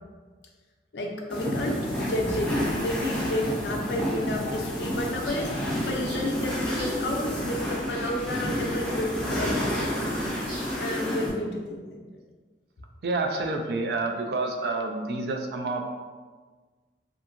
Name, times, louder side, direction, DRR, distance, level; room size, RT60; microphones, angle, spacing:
voice 1, 0.9-1.7 2.0-2.5 2.7-9.9 10.7-12.0, left 1 dB, 70° left, 1 dB, 0.4 m, -31 dB
sound 1, 1.3-11.3, equal, 5° left, 0.5 m, -29 dB
sound 2, 5.0-10.7, equal, 75° right, 1.2 m, -42 dB
voice 2, 13.0-15.9, right 3 dB, 60° right, 3 dB, 0.3 m, -28 dB
2.7 x 2.5 x 2.4 m, 1.4 s
head